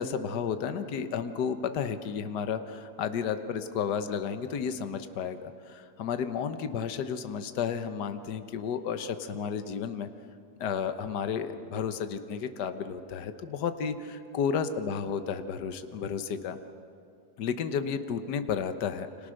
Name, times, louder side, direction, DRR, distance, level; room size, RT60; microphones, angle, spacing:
voice 1, 0.0-10.1 10.6-13.9 14.3-16.6 17.4-19.3, left 7 dB, 65° left, 9 dB, 1.6 m, -32 dB
29.0 x 26.0 x 6.5 m, 2.4 s
omnidirectional pair, 2.0 m